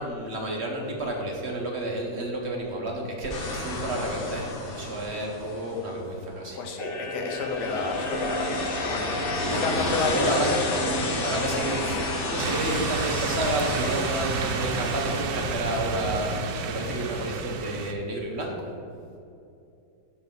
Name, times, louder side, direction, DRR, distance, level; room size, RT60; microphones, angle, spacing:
voice 1, 0.0-6.6 9.4-9.8 10.1-10.5 11.2-18.7, right 1 dB, 45° right, -1 dB, 1.1 m, -30 dB
sound 1, 3.3-5.9 6.8-15.2, left 2 dB, 45° left, 0.8 m, -30 dB
voice 2, 6.5-10.4, left 4 dB, 80° left, 3 dB, 1.4 m, -31 dB
sound 2, 12.4-17.9, right 5 dB, 85° right, 1.3 m, -31 dB
6.7 x 4.9 x 5.2 m, 2.6 s
omnidirectional pair, 1.8 m